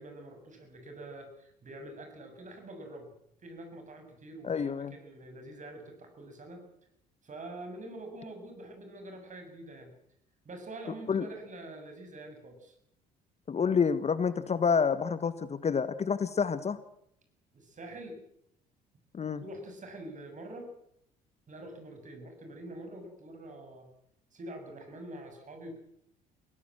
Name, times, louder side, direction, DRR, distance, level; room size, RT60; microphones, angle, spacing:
voice 1, 0.0-3.1 3.4-6.7 7.2-9.9 10.4-12.8 17.5-18.2 19.4-20.7 21.5-23.9 24.3-25.8, right 1 dB, 35° right, 5 dB, 7.6 m, -45 dB
voice 2, 4.4-4.9 11.1-11.3 13.5-16.8 19.1-19.4, left 6 dB, 30° left, 15 dB, 1.2 m, -28 dB
23.5 x 17.0 x 7.8 m, 0.73 s
figure-of-eight pair, 55°, 21 cm